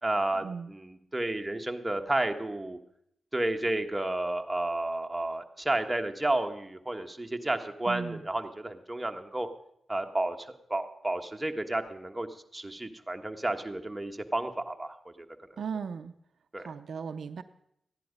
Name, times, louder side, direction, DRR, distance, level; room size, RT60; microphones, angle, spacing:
voice 1, 0.0-2.8 3.3-9.5 9.9-15.3 16.5-16.7, right 1 dB, 15° right, 5 dB, 1.4 m, -32 dB
voice 2, 7.9-8.2 15.6-16.1 16.6-17.4, right 6 dB, 75° right, 10 dB, 0.5 m, -36 dB
14.5 x 10.5 x 5.2 m, 0.75 s
cardioid pair, 45°, 0 cm